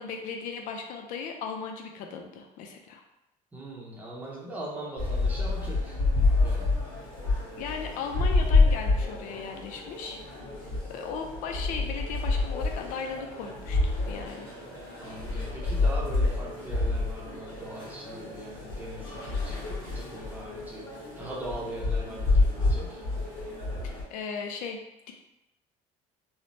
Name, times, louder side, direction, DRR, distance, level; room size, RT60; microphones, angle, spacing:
voice 1, 0.0-3.0 7.6-10.2 10.6-14.5 23.8-24.8, left 5 dB, 65° left, 3 dB, 0.4 m, -37 dB
voice 2, 3.5-6.0 6.4-6.7 15.0-20.9 21.2-23.0, right 1 dB, 10° right, -4 dB, 0.7 m, -40 dB
sound 1, 5.0-24.0, left 3 dB, 35° left, 1.4 m, -28 dB
3.2 x 2.0 x 2.6 m, 0.90 s
cardioid pair, 125°, 15 cm